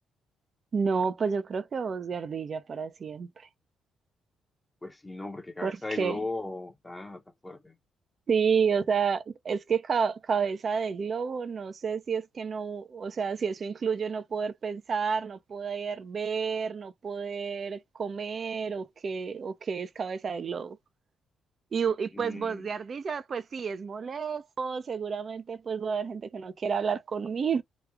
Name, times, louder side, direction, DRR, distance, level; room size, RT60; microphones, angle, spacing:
voice 1, 0.7-3.5 5.6-6.2 8.3-20.8 21.7-27.6, right 6 dB, 45° right, 0.6 m, -30 dB
voice 2, 4.8-7.7 22.1-22.7, left 2 dB, 15° left, 0.8 m, -37 dB
3.0 x 2.4 x 3.4 m
cardioid pair, 90°, 0 cm